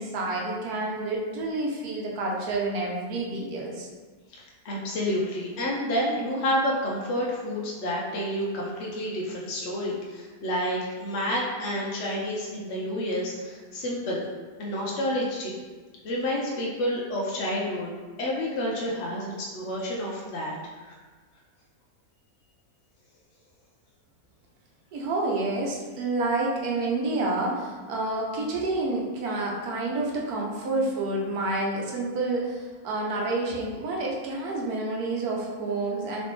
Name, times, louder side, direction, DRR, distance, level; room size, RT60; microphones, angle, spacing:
voice 1, 0.0-3.9 24.9-36.2, right 2 dB, 75° right, -2 dB, 1.2 m, -29 dB
voice 2, 4.3-14.3 14.6-15.5 16.0-17.9 18.2-20.9, equal, 60° left, -4 dB, 0.8 m, -29 dB
4.2 x 3.0 x 3.1 m, 1.4 s
omnidirectional pair, 1.7 m